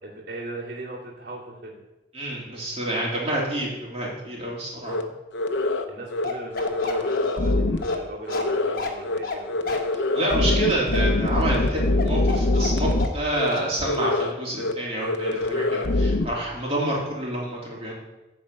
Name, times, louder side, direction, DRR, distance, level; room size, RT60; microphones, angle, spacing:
voice 1, 0.0-1.8 5.9-9.8, right 2 dB, 60° right, -7 dB, 2.5 m, -38 dB
voice 2, 2.1-5.1 10.1-17.9, right 1 dB, 35° right, -4 dB, 2.8 m, -28 dB
sound 1, 4.9-5.0 5.3-5.8 6.1-6.2 6.5-7.9 8.3-8.8 9.0-9.2 9.5-13.1 13.3-13.5 13.8-14.3 14.6-14.7 15.0-16.2, left 2 dB, 70° left, 0.7 m, -24 dB
Bark, 6.2-13.2 13.5-13.7, left 4 dB, 50° left, 1.3 m, -32 dB
11.0 x 4.4 x 7.8 m, 1.0 s
head